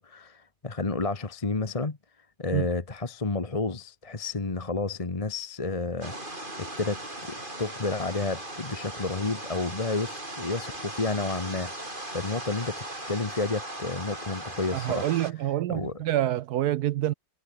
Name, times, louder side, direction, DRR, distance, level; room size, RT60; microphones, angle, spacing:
voice 1, 0.0-2.0 2.4-15.1 15.7-16.0, left 3 dB, 20° left, 1.3 m, -31 dB
sound 1, 6.0-15.3, right 1 dB, 30° right, 6.3 m, -38 dB
voice 2, 14.7-17.1, right 13 dB, 75° right, 1.1 m, -27 dB
omnidirectional pair, 1.8 m